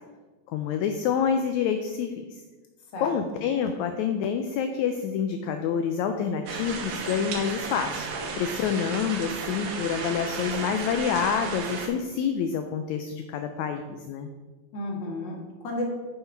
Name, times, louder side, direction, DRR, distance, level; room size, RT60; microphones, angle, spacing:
voice 1, 0.5-2.1 3.0-8.1 8.4-14.3, left 7 dB, 80° left, 6 dB, 1.7 m, -27 dB
voice 2, 2.9-3.5 14.7-15.8, left 1 dB, 40° left, -1 dB, 1.8 m, -33 dB
sound 1, 6.5-11.9, right 4 dB, 85° right, 2.7 m, -34 dB
9.4 x 5.7 x 4.6 m, 1.3 s
omnidirectional pair, 3.7 m